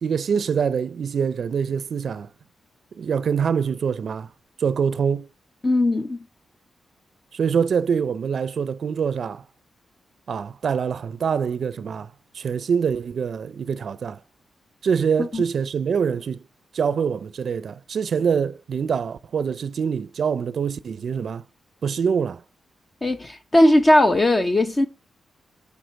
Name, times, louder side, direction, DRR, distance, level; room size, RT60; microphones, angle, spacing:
voice 1, 0.0-2.3 3.0-4.3 4.6-5.3 7.3-9.4 10.3-12.1 12.3-14.2 14.8-16.4 16.7-21.4 21.8-22.4, right 6 dB, 70° right, 0.5 m, -24 dB
voice 2, 5.6-6.2 15.2-15.4 23.0-24.9, left 1 dB, 30° left, 0.9 m, -18 dB
8.5 x 6.4 x 4.5 m
cardioid pair, 65°, 0 cm